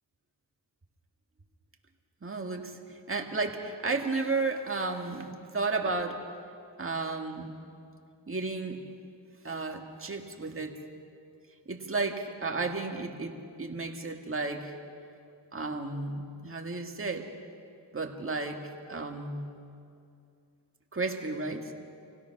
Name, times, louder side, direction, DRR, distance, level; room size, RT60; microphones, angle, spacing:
voice 1, 2.2-6.2 6.8-7.6 8.3-8.8 9.4-10.7 11.7-14.7 15.5-17.3 17.9-18.6 18.9-19.5 20.9-21.7, right 3 dB, 30° right, 2 dB, 2.1 m, -33 dB
26.0 x 17.0 x 6.1 m, 2.5 s
cardioid pair, 80°, 43 cm